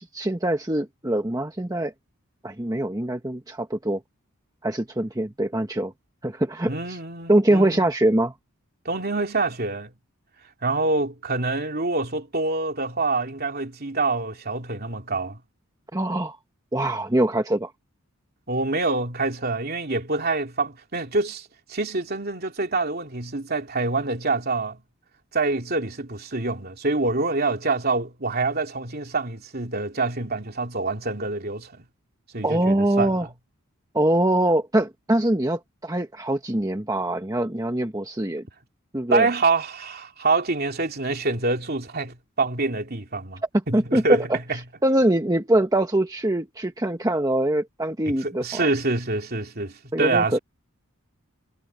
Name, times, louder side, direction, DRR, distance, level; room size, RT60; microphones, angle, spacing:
voice 1, 0.0-1.9 2.4-4.0 4.6-5.9 6.2-7.0 7.3-8.3 15.9-16.4 16.7-17.7 32.4-33.3 33.9-38.4 38.9-39.3 43.5-44.4 44.8-48.6 49.9-50.4, right 1 dB, 15° right, 1.2 m, -23 dB
voice 2, 6.7-7.9 8.8-9.9 10.6-15.4 18.5-24.8 25.3-31.8 32.3-33.3 39.1-44.6 48.1-50.4, right 3 dB, 45° right, 3.0 m, -26 dB
head